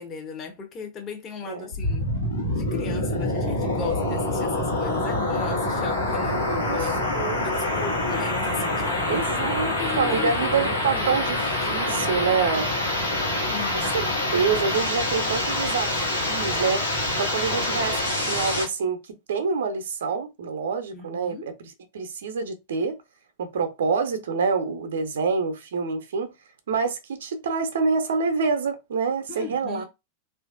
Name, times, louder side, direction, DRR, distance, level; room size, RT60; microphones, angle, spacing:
voice 1, 0.0-2.1 2.5-7.0 7.4-11.0 11.7-12.1 12.3-12.4 13.5-14.3 20.9-21.5 29.3-29.8, left 6 dB, 30° left, 0.8 m, -37 dB
sound 1, 1.7-18.7, left 1 dB, 90° left, 1.1 m, -26 dB
voice 2, 6.2-6.9 7.1-7.9 9.1-12.7 13.9-16.8 17.2-19.0 19.3-23.0 23.4-26.3 26.7-29.8, right 5 dB, 65° right, 0.6 m, -27 dB
3.1 x 2.5 x 2.4 m
figure-of-eight pair, 90°, 0 cm